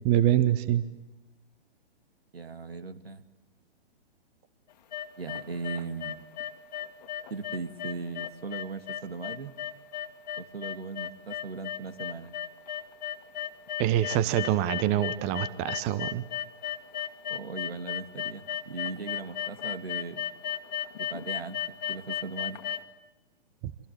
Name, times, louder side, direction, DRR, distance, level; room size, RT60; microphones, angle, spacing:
voice 1, 0.0-0.8 13.8-16.2, right 12 dB, 20° right, 15 dB, 0.9 m, -25 dB
voice 2, 2.3-3.3 5.2-6.2 7.3-9.6 10.4-12.3 17.3-20.2 21.0-21.6 21.9-22.6, right 4 dB, 70° right, 12 dB, 2.2 m, -38 dB
sound 1, 4.7-22.8, left 11 dB, 45° left, 1.9 m, -35 dB
28.0 x 26.0 x 8.0 m, 1.1 s
figure-of-eight pair, 125°, 31 cm